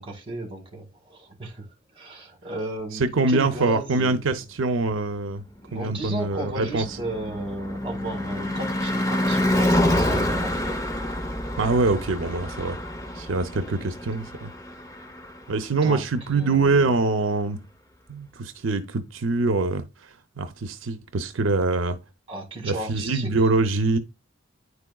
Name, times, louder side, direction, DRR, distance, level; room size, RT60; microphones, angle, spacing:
voice 1, 0.0-1.7 1.9-4.4 5.7-10.8 15.7-16.9 22.3-23.3, right 1 dB, 30° right, 2.2 m, -35 dB
voice 2, 3.0-5.4 5.7-6.8 11.6-12.8 13.2-14.5 15.5-17.6 18.1-19.8 20.4-22.0 22.6-24.0, right 3 dB, 90° right, 0.6 m, -24 dB
Car passing by / Truck / Engine, 5.6-15.9, left 1 dB, 15° left, 0.8 m, -27 dB
9.6 x 4.7 x 2.3 m
head